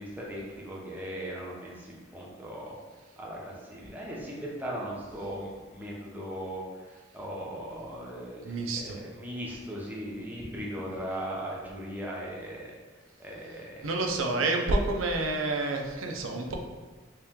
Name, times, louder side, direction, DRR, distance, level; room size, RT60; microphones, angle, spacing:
voice 1, 0.0-2.8 3.2-12.8 13.2-13.9, equal, 10° right, -4 dB, 0.6 m, -38 dB
voice 2, 8.5-9.0 13.8-16.6, right 2 dB, 85° right, 2 dB, 0.5 m, -28 dB
3.2 x 2.9 x 3.5 m, 1.4 s
head